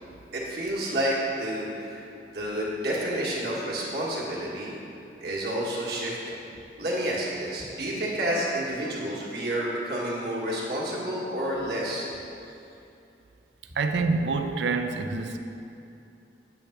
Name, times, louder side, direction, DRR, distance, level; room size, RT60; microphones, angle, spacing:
voice 1, 0.3-2.0 2.3-4.7 5.2-6.5 6.8-12.1, right 1 dB, 60° right, -5 dB, 1.3 m, -29 dB
voice 2, 13.8-15.4, right 4 dB, 80° right, 7 dB, 0.4 m, -26 dB
8.5 x 3.3 x 5.7 m, 2.7 s
head